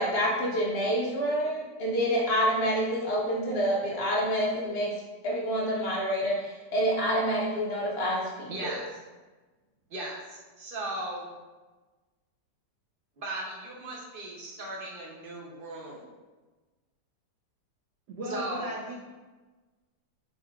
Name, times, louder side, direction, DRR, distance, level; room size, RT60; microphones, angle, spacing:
voice 1, 0.0-4.9 5.2-8.8, equal, 75° left, -3 dB, 0.5 m, -27 dB
voice 2, 8.5-9.0 9.9-11.3 13.2-16.0 18.3-18.7, right 2 dB, 45° right, -3 dB, 0.7 m, -37 dB
voice 3, 18.1-18.9, right 1 dB, 70° right, -5 dB, 1.2 m, -36 dB
5.6 x 3.5 x 2.4 m, 1.2 s
omnidirectional pair, 1.9 m